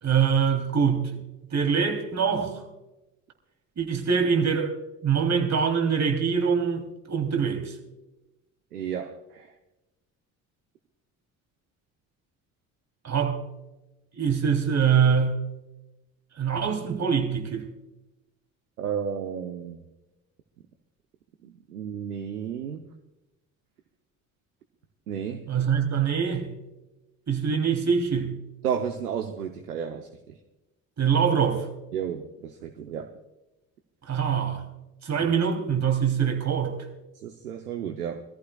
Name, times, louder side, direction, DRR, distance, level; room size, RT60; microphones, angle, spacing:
voice 1, 0.0-1.2 1.5-2.6 3.8-4.7 5.0-7.7 13.0-13.4 14.1-15.4 16.4-17.7 25.5-26.5 27.3-28.4 31.0-31.7 34.1-34.6 35.0-36.8, right 6 dB, 40° right, 3.2 m, -24 dB
voice 2, 8.7-9.5 18.8-19.8 21.4-22.9 25.1-25.5 28.6-30.4 31.9-33.1 37.2-38.2, right 8 dB, 90° right, 0.8 m, -32 dB
24.5 x 14.5 x 2.3 m
hypercardioid pair, 55°, 44 cm